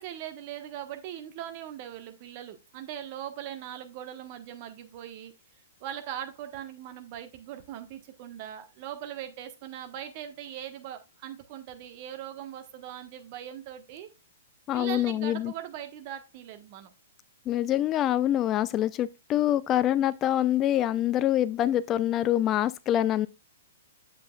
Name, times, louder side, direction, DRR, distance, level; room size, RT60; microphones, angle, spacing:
voice 1, 0.0-5.3 5.8-14.1 14.7-16.9, right 11 dB, 40° right, 1.2 m, -40 dB
voice 2, 14.7-15.5 17.5-23.3, left 12 dB, 25° left, 0.3 m, -25 dB
8.5 x 7.4 x 2.4 m
figure-of-eight pair, 115°, 0 cm